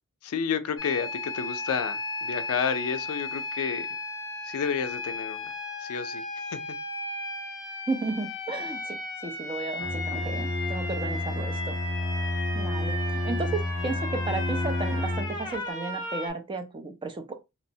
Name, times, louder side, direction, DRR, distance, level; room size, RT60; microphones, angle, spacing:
voice 1, 0.2-3.9 4.4-6.6, left 6 dB, 70° left, 0.4 m, -31 dB
sound 1, 0.8-16.3, left 2 dB, 20° left, 0.7 m, -35 dB
voice 2, 7.9-11.8 12.5-17.3, right 3 dB, 25° right, 0.4 m, -34 dB
Bowed string instrument, 9.8-15.5, left 1 dB, 65° right, 1.1 m, -30 dB
2.9 x 2.0 x 2.6 m
head